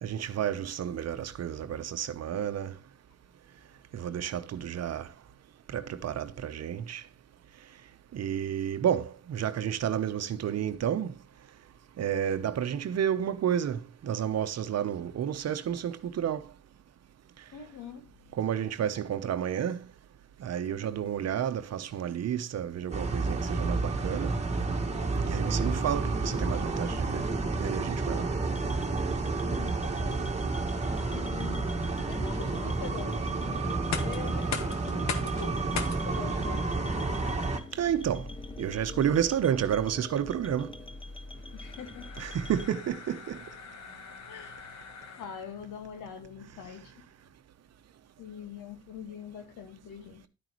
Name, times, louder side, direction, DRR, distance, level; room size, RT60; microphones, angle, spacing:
voice 1, 0.0-2.7 3.9-5.1 5.7-7.0 8.1-11.1 12.0-16.4 18.4-19.9 20.4-24.3 25.2-27.2 27.6-28.3 37.8-38.3 38.6-40.7 42.2-43.4, right 9 dB, 60° right, 0.9 m, -31 dB
voice 2, 17.5-18.1 29.4-30.3 31.1-31.7 32.1-35.6 35.9-36.9 41.5-42.1 44.3-44.8 45.2-47.0 48.2-50.3, left 7 dB, 85° left, 2.0 m, -44 dB
sound 1, 22.9-37.6, right 3 dB, 20° right, 1.7 m, -30 dB
sound 2, 28.5-42.7, left 2 dB, 15° left, 0.7 m, -44 dB
sound 3, 33.7-45.6, left 6 dB, 65° left, 1.4 m, -42 dB
11.0 x 9.0 x 3.1 m
cardioid pair, 90°, 30 cm